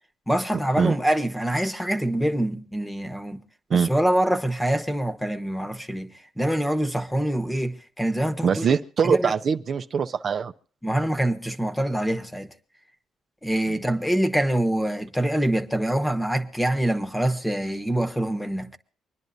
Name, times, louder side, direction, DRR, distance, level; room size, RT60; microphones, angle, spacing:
voice 1, 0.3-3.4 3.7-8.7 9.0-9.3 10.8-12.5 13.4-18.7, right 1 dB, 5° left, 1.2 m, -25 dB
voice 2, 8.4-10.5, right 6 dB, 50° right, 0.6 m, -23 dB
25.0 x 10.5 x 2.7 m
cardioid pair, 90°, 0 cm